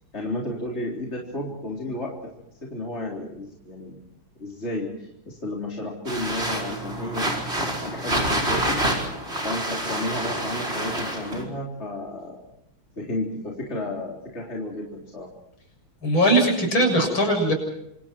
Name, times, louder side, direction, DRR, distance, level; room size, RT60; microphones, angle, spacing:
voice 1, 0.1-2.2 2.6-4.0 4.4-8.9 9.4-12.4 13.0-15.3, left 1 dB, 30° left, -2 dB, 4.0 m, -32 dB
sound 1, 6.0-11.4, right 1 dB, 30° right, 5.3 m, -27 dB
voice 2, 16.0-17.5, right 1 dB, 70° left, 4 dB, 8.0 m, -20 dB
28.5 x 26.5 x 4.6 m, 0.76 s
omnidirectional pair, 2.3 m